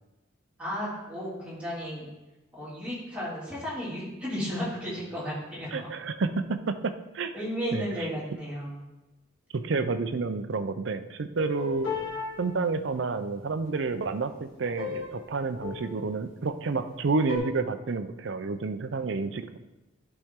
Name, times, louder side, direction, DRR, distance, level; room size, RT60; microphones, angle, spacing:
voice 1, 0.6-2.1 2.5-5.9 7.3-8.8, equal, 5° right, -9 dB, 2.8 m, -34 dB
voice 2, 5.7-7.3 7.7-7.8 9.5-11.9 12.4-19.6, right 4 dB, 65° right, 10 dB, 0.5 m, -30 dB
sound 1, 11.4-12.3 14.8-15.2 15.5-16.1 17.3-17.4, left 5 dB, 85° left, 2.4 m, -34 dB
11.5 x 4.4 x 3.6 m, 1.1 s
head